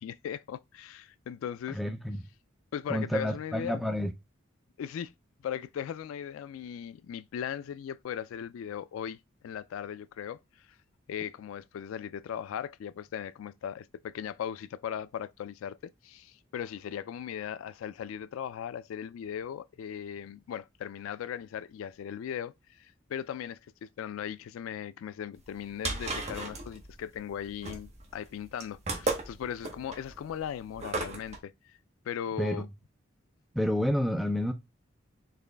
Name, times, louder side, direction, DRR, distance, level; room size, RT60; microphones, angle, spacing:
voice 1, 0.0-1.8 2.7-3.8 4.8-5.1 5.4-9.2 9.4-10.7 11.1-31.8 32.1-32.7, left 9 dB, 85° left, 0.3 m, -38 dB
voice 2, 1.7-2.3 2.9-4.1 32.4-32.6 33.5-34.5, left 1 dB, ahead, 0.4 m, -29 dB
sound 1, 25.4-31.4, right 2 dB, 35° right, 0.8 m, -35 dB
4.1 x 3.0 x 3.3 m
head